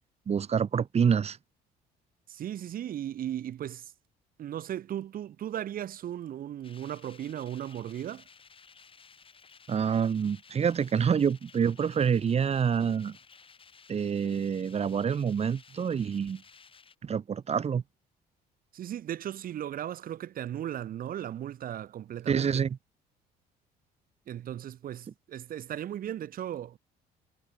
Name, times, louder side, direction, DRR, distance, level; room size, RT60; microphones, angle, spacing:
voice 1, 0.3-1.4 9.7-13.2 13.9-16.4 17.0-17.8 22.3-22.8, right 7 dB, 40° right, 2.8 m, -27 dB
voice 2, 2.3-3.9 4.4-8.2 18.7-22.6 24.3-26.8, right 11 dB, 55° right, 3.1 m, -36 dB
sound 1, 6.6-17.0, left 5 dB, 30° left, 7.0 m, -56 dB
cardioid pair, 110°, 17 cm